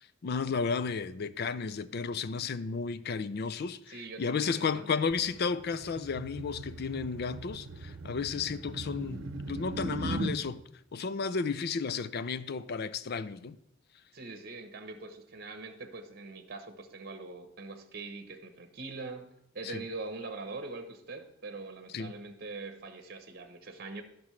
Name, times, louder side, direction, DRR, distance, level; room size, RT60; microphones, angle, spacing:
voice 1, 0.0-13.6 19.6-19.8 21.9-22.1, left 5 dB, 55° left, 0.4 m, -33 dB
voice 2, 3.9-5.0 14.1-24.0, right 3 dB, 50° right, 0.9 m, -43 dB
sound 1, 5.1-10.4, right 2 dB, 85° right, 0.7 m, -39 dB
15.0 x 6.1 x 3.2 m
head